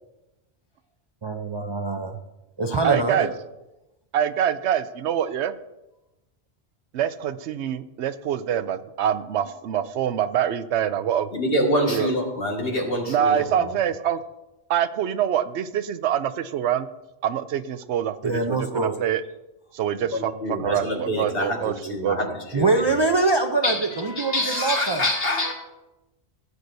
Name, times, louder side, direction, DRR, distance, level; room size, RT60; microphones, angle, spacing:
voice 1, 1.2-2.2 2.6-3.3 18.2-19.0 22.5-25.0, right 3 dB, 35° right, 4 dB, 0.4 m, -24 dB
voice 2, 2.8-3.3 4.1-5.5 6.9-11.3 11.9-12.1 13.1-14.2 14.7-16.9 17.2-19.2 19.7-22.3, right 9 dB, 85° right, 13 dB, 0.9 m, -25 dB
voice 3, 11.3-13.8 20.1-22.8 23.6-25.5, left 1 dB, 55° left, 0 dB, 2.0 m, -26 dB
16.0 x 8.0 x 2.6 m, 0.99 s
omnidirectional pair, 1.1 m